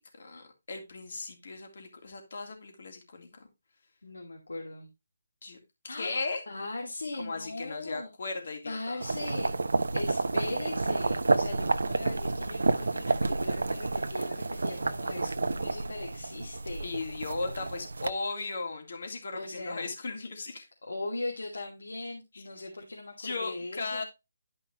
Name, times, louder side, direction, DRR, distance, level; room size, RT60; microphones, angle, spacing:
voice 1, 0.0-3.4 5.4-5.6 5.8-6.4 7.2-9.0 16.8-20.7 22.3-22.4 23.2-24.0, left 3 dB, 55° left, 3.0 m, -37 dB
voice 2, 4.0-4.9 5.9-8.1 8.6-9.5 9.9-16.9 19.3-19.9 20.8-24.0, left 2 dB, 90° left, 2.6 m, -39 dB
sound 1, 9.0-18.1, right 3 dB, 80° right, 1.0 m, -30 dB
12.0 x 5.4 x 3.1 m
figure-of-eight pair, 160°, 0 cm